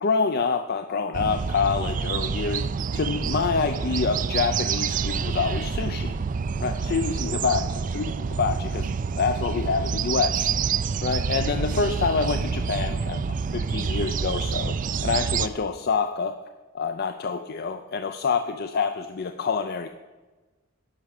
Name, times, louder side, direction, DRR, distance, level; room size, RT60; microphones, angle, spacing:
voice 1, 0.0-2.7 2.9-6.2 6.6-8.1 8.4-10.5 11.0-16.4 16.7-19.9, left 5 dB, 50° left, 8 dB, 0.5 m, -27 dB
sound 1, 1.1-15.5, right 5 dB, 40° right, 0.4 m, -27 dB
11.0 x 5.9 x 6.5 m, 1.2 s
head